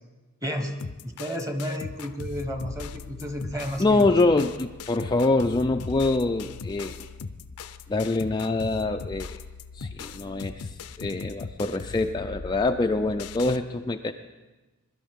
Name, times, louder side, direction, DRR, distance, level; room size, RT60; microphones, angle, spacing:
voice 1, 0.4-0.7 1.0-4.3 9.8-9.9, equal, 15° right, 5 dB, 1.2 m, -32 dB
sound 1, 0.8-13.6, left 4 dB, 85° left, 0.6 m, -39 dB
voice 2, 3.8-7.0 7.9-9.4 9.7-14.1, left 2 dB, 20° left, 4 dB, 0.3 m, -25 dB
22.0 x 12.0 x 3.6 m, 1.2 s
head